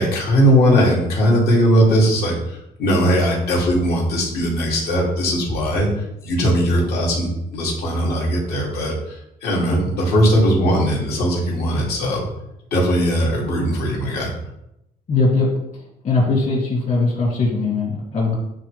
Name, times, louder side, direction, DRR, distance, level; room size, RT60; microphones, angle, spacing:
voice 1, 0.0-5.9 6.2-12.3 12.7-14.3, equal, 70° left, -3 dB, 2.5 m, -19 dB
voice 2, 15.1-18.3, left 3 dB, 45° left, -5 dB, 2.7 m, -20 dB
9.6 x 3.8 x 3.4 m, 0.83 s
cardioid pair, 110°, 17 cm